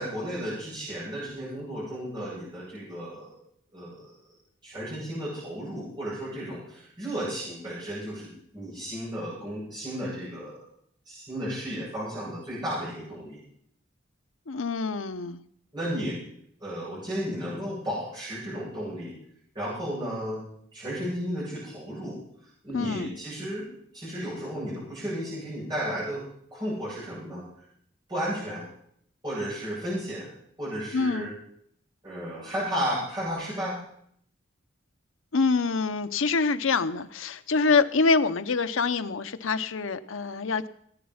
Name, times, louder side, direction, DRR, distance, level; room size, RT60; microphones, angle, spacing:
voice 1, 0.0-3.3 3.7-4.1 4.6-10.6 11.1-13.4 15.7-16.2 16.6-19.1 19.5-20.4 20.7-22.2 22.6-23.7 23.9-26.2 26.5-27.4 28.1-28.6 29.2-30.3 30.6-31.3 32.0-33.8, equal, 20° right, -10 dB, 7.8 m, -33 dB
voice 2, 14.5-15.4 22.7-23.1 30.9-31.3 35.3-40.7, left 4 dB, 85° left, 11 dB, 0.8 m, -25 dB
18.5 x 9.5 x 5.7 m, 0.69 s
head